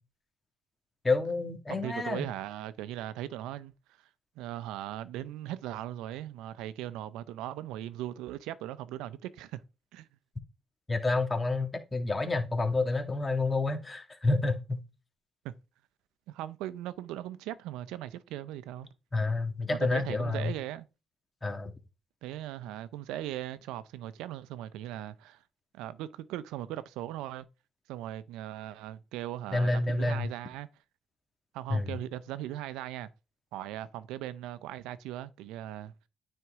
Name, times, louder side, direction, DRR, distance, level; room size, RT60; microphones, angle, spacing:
voice 1, 1.0-2.2 10.9-14.8 19.1-20.5 21.4-21.7 29.5-30.3 31.7-31.9, left 2 dB, 25° left, 1.9 m, -29 dB
voice 2, 1.7-3.7 4.4-9.6 9.9-10.1 15.4-15.5 16.3-18.9 19.7-20.9 22.2-25.4 25.7-27.5 27.9-30.7 31.5-33.1 33.5-35.9, right 13 dB, 85° right, 0.6 m, -39 dB
9.4 x 4.4 x 3.7 m
supercardioid pair, 60°, 0 cm